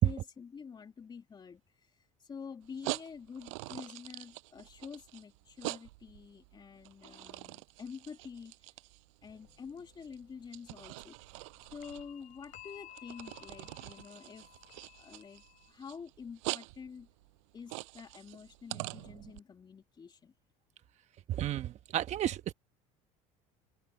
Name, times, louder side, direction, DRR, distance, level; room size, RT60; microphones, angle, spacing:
voice 1, 0.0-1.9 2.2-8.5 9.2-14.5 15.0-17.1 17.5-20.3, left 6 dB, 30° left, 2.9 m, -48 dB
sound 1, 2.6-19.4, right 26 dB, 85° right, 6.0 m, -44 dB
sound 2, 9.3-9.5 11.8-15.7, left 13 dB, 55° left, 5.5 m, -55 dB
voice 2, 21.3-22.5, right 12 dB, 45° right, 1.3 m, -33 dB
supercardioid pair, 110°, 16 cm